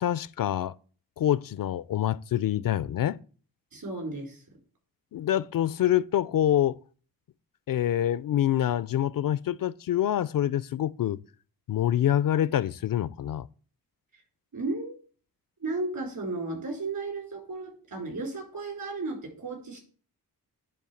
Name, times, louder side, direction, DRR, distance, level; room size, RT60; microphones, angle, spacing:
voice 1, 0.0-0.7 1.2-3.2 5.1-6.8 7.7-11.2 11.7-13.5, left 11 dB, 60° left, 0.5 m, -26 dB
voice 2, 3.7-4.4 14.1-14.2 14.5-15.0 15.6-19.8, right 3 dB, 60° right, 4.7 m, -34 dB
10.0 x 3.6 x 7.1 m
cardioid pair, 75°, 39 cm